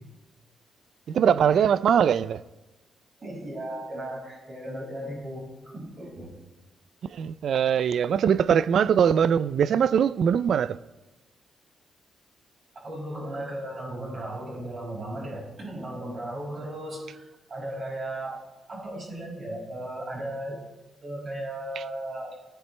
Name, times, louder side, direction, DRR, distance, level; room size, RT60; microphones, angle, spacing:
voice 1, 1.1-2.4 7.0-10.8 21.8-21.9, right 8 dB, 55° right, 0.4 m, -22 dB
voice 2, 3.2-6.3 12.8-20.6 21.0-22.3, right 1 dB, 30° right, 5.8 m, -36 dB
19.0 x 15.0 x 3.3 m
wide cardioid pair, 170°, 0 cm